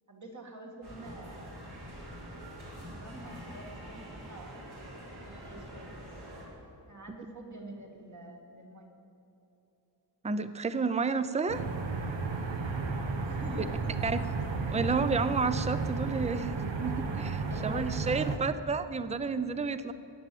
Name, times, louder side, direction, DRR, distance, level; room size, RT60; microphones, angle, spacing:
voice 1, 0.1-1.6 2.8-4.7 5.2-6.0 6.9-9.0 12.8-14.3 17.5-18.4, right 1 dB, 40° right, 1 dB, 2.0 m, -47 dB
sound 1, 0.8-6.4, equal, 65° right, 4.3 m, -45 dB
voice 2, 10.2-11.6 14.0-14.2 14.7-19.9, right 4 dB, 15° right, 12 dB, 0.5 m, -31 dB
sound 2, 11.5-18.4, right 4 dB, 80° right, 1.2 m, -33 dB
14.5 x 10.5 x 7.7 m, 3.0 s
wide cardioid pair, 165°, 44 cm